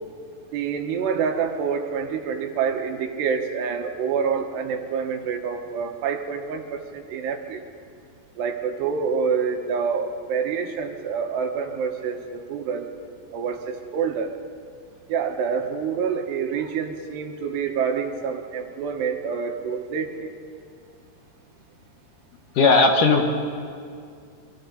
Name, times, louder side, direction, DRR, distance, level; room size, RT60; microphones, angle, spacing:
voice 1, 0.5-7.6 8.4-12.9 13.3-14.3 15.1-20.3, right 6 dB, 75° right, 4 dB, 3.4 m, -27 dB
voice 2, 22.6-23.2, left 3 dB, 65° left, 2 dB, 2.3 m, -16 dB
27.5 x 25.0 x 4.0 m, 2.3 s
omnidirectional pair, 4.9 m